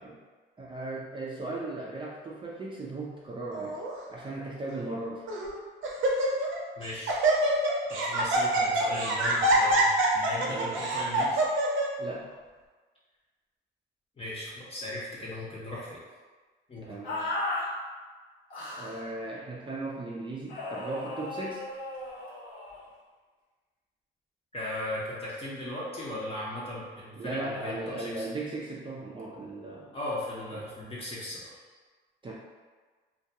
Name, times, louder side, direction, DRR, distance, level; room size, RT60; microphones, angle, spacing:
voice 1, 0.6-3.8 4.1-5.3 10.4-10.8 12.0-12.4 16.9-17.3 18.8-21.6 27.2-29.9 30.5-30.6 32.2-32.3, right 2 dB, 25° right, -5 dB, 0.4 m, -37 dB
Laughter, 3.5-3.9 4.7-4.8 5.3-5.5 5.8-6.6 6.8-11.9, right 1 dB, 80° right, 0.5 m, -25 dB
voice 2, 6.8-7.2 7.9-11.4 14.2-16.0 16.7-16.9 24.5-28.3 29.9-31.5, left 1 dB, 30° left, -7 dB, 0.7 m, -37 dB
sound 1, 17.0-17.7 18.5-19.0 20.5-22.8, left 2 dB, 90° left, 0.8 m, -35 dB
2.3 x 2.2 x 2.7 m, 1.4 s
cardioid pair, 90°, 20 cm